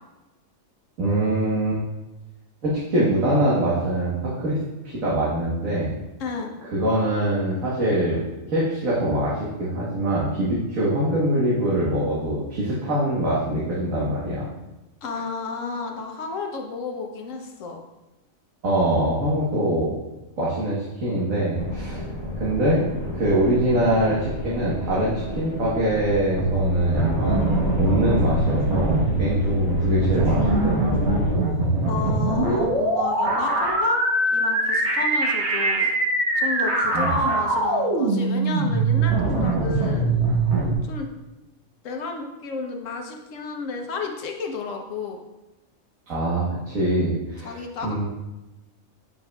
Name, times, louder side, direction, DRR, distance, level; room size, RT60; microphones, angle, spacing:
voice 1, 1.0-1.8 2.6-4.6 4.8-5.9 6.7-14.4 18.6-19.9 20.4-22.0 22.3-22.8 23.1-31.0 36.9-37.2 46.1-48.0, right 1 dB, 80° right, -7 dB, 1.7 m, -23 dB
voice 2, 6.2-6.5 15.0-17.8 31.9-34.0 34.3-35.9 36.4-40.1 40.8-41.1 41.8-45.2 47.4-48.0, left 4 dB, 70° left, 3 dB, 1.2 m, -32 dB
sound 1, 21.6-31.4, equal, 20° left, 0.9 m, -31 dB
sound 2, 26.4-40.7, right 2 dB, 55° right, 1.3 m, -22 dB
7.4 x 5.8 x 2.3 m, 1.1 s
omnidirectional pair, 1.4 m